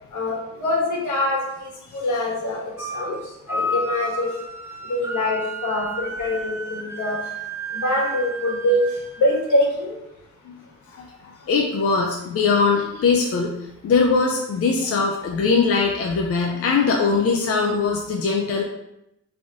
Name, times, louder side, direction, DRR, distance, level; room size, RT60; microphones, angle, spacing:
voice 1, 0.1-3.2 3.5-4.3 4.9-7.2 7.7-8.9 9.2-10.0, left 1 dB, 85° left, -2 dB, 1.4 m, -24 dB
sound 1, 2.8-3.1 3.5-9.5, right 1 dB, 10° right, 0.3 m, -31 dB
voice 2, 10.9-13.6 13.8-18.6, left 4 dB, 50° left, 0 dB, 0.5 m, -21 dB
4.0 x 3.4 x 3.6 m, 0.84 s
wide cardioid pair, 165°, 29 cm